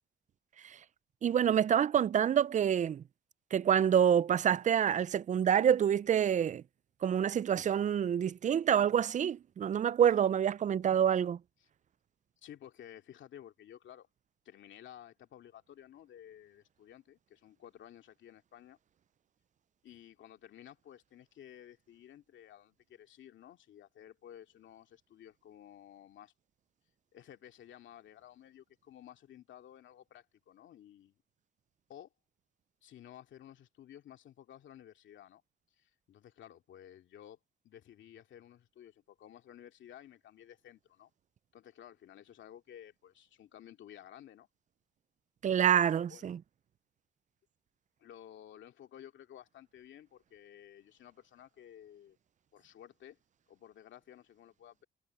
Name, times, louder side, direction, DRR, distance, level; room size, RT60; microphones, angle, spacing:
voice 1, 1.2-3.0 3.5-6.6 7.0-11.4 45.4-46.4, right 9 dB, 40° right, 0.4 m, -27 dB
voice 2, 12.4-14.1 14.4-18.8 19.8-26.3 27.1-31.2 31.9-32.1 32.8-35.4 35.7-41.1 41.5-44.5 45.6-46.3 48.0-52.2 52.5-53.2 53.5-54.8, left 10 dB, 70° left, 2.5 m, -54 dB
cardioid pair, 90°, 20 cm